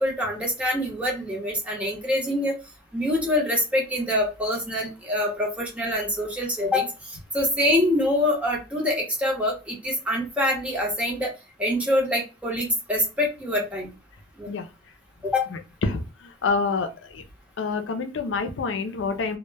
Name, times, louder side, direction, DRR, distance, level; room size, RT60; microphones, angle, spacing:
voice 1, 0.0-2.6 2.9-6.9 7.3-11.3 11.6-13.9 14.4-14.5 15.2-15.5, left 1 dB, 5° right, 0.7 m, -25 dB
voice 2, 16.4-17.2 17.6-19.4, left 4 dB, 90° left, 0.4 m, -27 dB
2.1 x 2.1 x 3.1 m
head